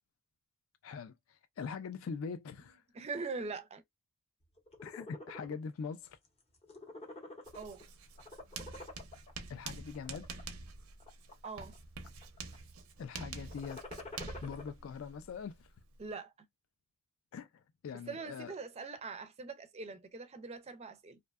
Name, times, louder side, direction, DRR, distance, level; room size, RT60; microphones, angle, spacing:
voice 1, 0.8-2.8 4.8-6.2 9.5-10.4 13.0-13.8 14.4-15.7 17.3-18.5, left 6 dB, 70° left, 0.3 m, -43 dB
voice 2, 2.6-3.8 7.5-7.9 11.4-11.8 16.0-16.5 17.9-21.2, right 4 dB, 30° right, 0.4 m, -43 dB
sound 1, 4.6-5.6 6.0-6.3 6.6-7.8 8.2-9.3 9.9-10.4 11.0-11.8 12.0-12.6 13.4-14.7, left 2 dB, 30° left, 0.6 m, -48 dB
Writing, 7.4-16.1, right 4 dB, 90° right, 0.5 m, -47 dB
2.6 x 2.1 x 2.3 m
head